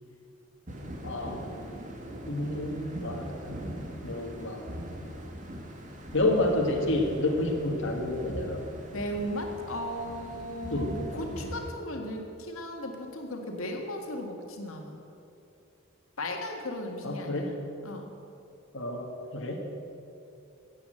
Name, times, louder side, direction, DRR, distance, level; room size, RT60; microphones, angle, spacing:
sound 1, 0.7-11.7, equal, 40° right, 1.8 m, -41 dB
voice 1, 1.0-1.5 2.3-3.7 4.0-4.7 6.1-8.6 10.7-11.0 17.0-17.5 18.7-19.7, left 1 dB, 65° left, 0 dB, 1.7 m, -29 dB
voice 2, 8.9-15.0 16.2-17.5 17.8-18.1, equal, 85° left, 2 dB, 1.8 m, -36 dB
14.0 x 8.7 x 8.8 m, 2.7 s
head